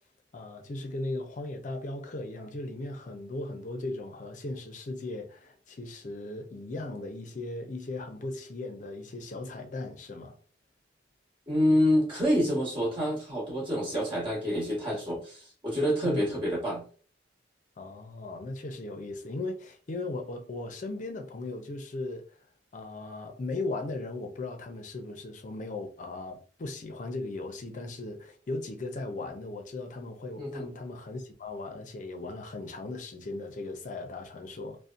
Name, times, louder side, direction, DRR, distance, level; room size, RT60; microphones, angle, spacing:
voice 1, 0.3-10.4 16.0-16.4 17.8-22.2 22.7-34.8, left 2 dB, 40° left, 0.5 m, -37 dB
voice 2, 11.5-16.8 30.4-30.7, equal, 25° right, 1.2 m, -27 dB
2.7 x 2.1 x 2.4 m
head